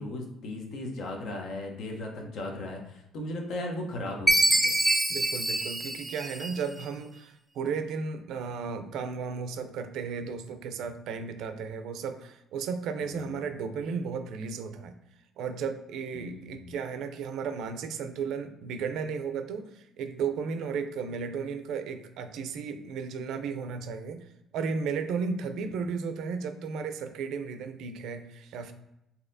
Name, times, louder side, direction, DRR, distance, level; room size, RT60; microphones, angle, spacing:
voice 1, 0.0-4.7 13.0-13.5 16.1-16.8 25.6-25.7, left 1 dB, 65° left, 1 dB, 0.8 m, -37 dB
Chime, 4.3-6.8, right 1 dB, 5° right, 0.4 m, -25 dB
voice 2, 5.1-14.9 15.4-24.3 24.5-28.7, right 5 dB, 75° right, 8 dB, 0.4 m, -34 dB
4.1 x 2.7 x 2.6 m, 0.86 s
cardioid pair, 110°, 0 cm